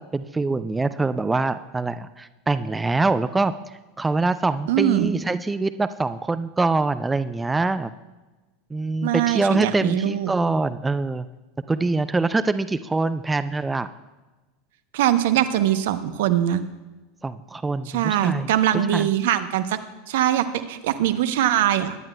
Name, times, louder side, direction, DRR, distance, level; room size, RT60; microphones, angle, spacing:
voice 1, 0.0-3.5 4.0-7.9 8.7-11.3 11.7-13.9 17.2-18.5 18.9-19.1, right 3 dB, 15° right, 13 dB, 0.4 m, -24 dB
voice 2, 4.7-5.1 9.0-10.3 14.9-16.6 17.9-19.8 20.1-22.0, right 11 dB, 65° right, 11 dB, 0.7 m, -22 dB
20.5 x 10.5 x 2.2 m, 1.2 s
hypercardioid pair, 85°, 0 cm